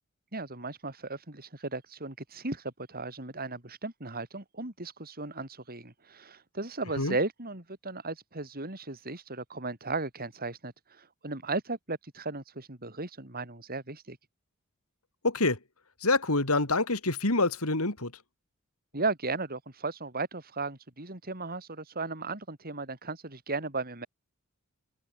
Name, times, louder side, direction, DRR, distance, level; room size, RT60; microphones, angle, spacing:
voice 1, 0.3-14.2 18.9-24.1, right 3 dB, 45° right, 5.1 m, -36 dB
voice 2, 15.2-15.6 16.0-18.1, left 2 dB, 75° left, 3.9 m, -26 dB
head